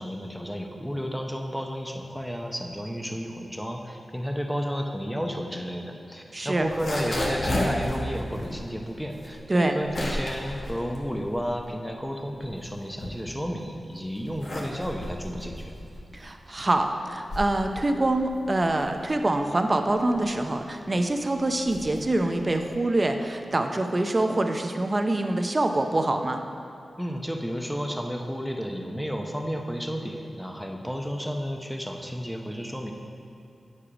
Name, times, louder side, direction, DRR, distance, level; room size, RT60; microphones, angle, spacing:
voice 1, 0.0-15.7 27.0-32.9, equal, ahead, 2 dB, 0.7 m, -32 dB
voice 2, 6.3-6.7 9.5-9.7 16.1-26.4, right 2 dB, 35° right, 5 dB, 0.6 m, -25 dB
sound 1, 6.6-11.8 12.2-13.6 14.1-22.9, left 1 dB, 55° left, 1.4 m, -34 dB
8.4 x 4.9 x 5.0 m, 2.7 s
cardioid pair, 65°, 0 cm